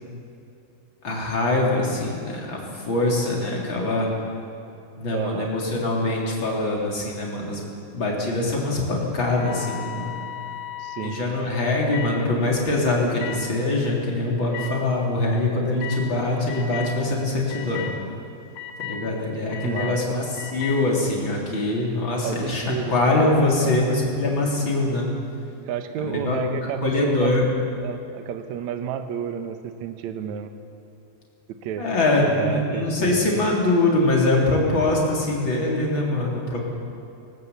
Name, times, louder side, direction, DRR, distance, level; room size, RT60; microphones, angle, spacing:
voice 1, 1.0-4.1 5.0-7.6 7.9-10.2 11.0-17.9 18.8-25.0 26.0-26.4 26.8-27.5 31.8-36.6, left 2 dB, 30° left, -2 dB, 3.8 m, -23 dB
voice 2, 5.1-5.5 10.8-11.2 19.6-20.0 22.2-23.2 23.6-23.8 25.6-27.4 27.8-30.5 31.5-31.9 32.2-33.5, right 8 dB, 65° right, 8 dB, 2.0 m, -31 dB
sound 1, 9.3-11.1 11.9-12.1 13.2-13.4 14.5-14.7 15.8-16.0 16.5-16.9 17.5-17.9 18.5-19.0 19.5-19.9 20.4-20.8, left 10 dB, 80° left, 3.8 m, -34 dB
19.5 x 18.5 x 8.4 m, 2.8 s
omnidirectional pair, 4.5 m